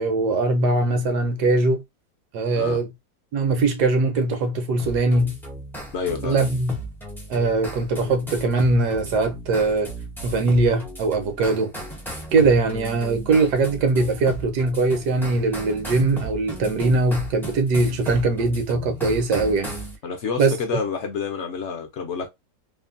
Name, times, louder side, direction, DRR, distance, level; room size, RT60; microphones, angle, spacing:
voice 1, 0.0-1.8 2.3-2.9 3.3-5.4 6.2-6.8 7.3-9.9 10.2-11.7 12.3-19.7 20.4-20.5, right 3 dB, 80° right, 1.3 m, -21 dB
sound 1, 4.8-20.0, right 1 dB, 5° left, 0.3 m, -36 dB
voice 2, 5.9-6.4 20.0-22.3, left 5 dB, 65° left, 0.7 m, -28 dB
3.1 x 2.1 x 2.5 m
omnidirectional pair, 1.7 m